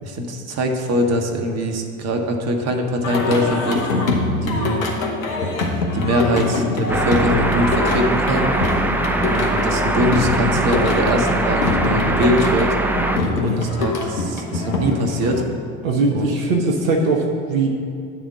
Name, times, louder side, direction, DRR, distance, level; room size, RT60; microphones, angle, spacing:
voice 1, 0.0-3.8 4.4-4.8 5.9-8.5 9.2-12.7 13.2-15.4 16.1-16.3, equal, 40° right, 3 dB, 1.1 m, -22 dB
Singing, 3.0-15.4, left 3 dB, 80° left, 1.1 m, -24 dB
sound 1, 6.9-13.2, right 2 dB, 5° right, 0.3 m, -21 dB
voice 2, 15.8-17.7, right 3 dB, 75° right, 1 dB, 0.9 m, -20 dB
9.9 x 3.7 x 6.9 m, 2.5 s
figure-of-eight pair, 65°, 40 cm